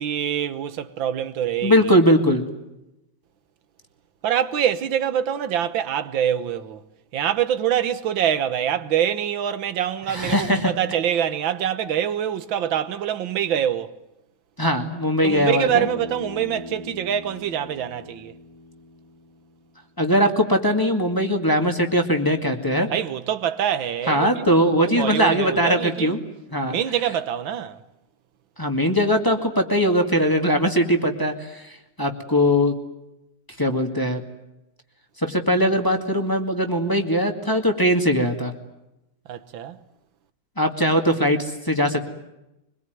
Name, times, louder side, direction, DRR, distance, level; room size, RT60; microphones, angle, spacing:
voice 1, 0.0-1.9 4.2-6.8 7.1-13.9 15.2-18.3 22.9-26.2 26.6-27.8 39.3-39.8, right 9 dB, 90° right, 1.9 m, -25 dB
voice 2, 1.6-2.5 10.1-10.7 14.6-15.9 20.0-22.9 24.1-26.2 26.5-26.8 28.6-31.7 32.0-32.7 33.6-34.2 35.2-38.5 40.6-42.1, equal, 10° left, 2.1 m, -20 dB
Bass guitar, 15.7-19.9, left 3 dB, 50° left, 2.8 m, -40 dB
24.5 x 21.5 x 9.4 m
omnidirectional pair, 2.1 m